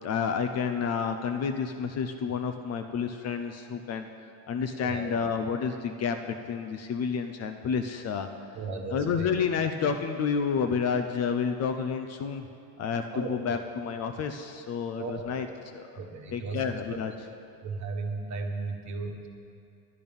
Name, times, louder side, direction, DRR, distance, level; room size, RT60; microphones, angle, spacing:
voice 1, 0.0-4.1 4.5-8.3 8.9-12.5 12.8-15.5 15.7-15.9 16.3-17.1, left 6 dB, 35° left, 7 dB, 0.6 m, -30 dB
voice 2, 4.8-5.2 8.5-9.3 13.1-13.3 15.0-15.2 16.0-16.6 16.9-17.0 17.6-19.3, right 3 dB, 40° right, 2 dB, 1.4 m, -35 dB
10.5 x 10.5 x 5.4 m, 2.6 s
cardioid pair, 130°, 44 cm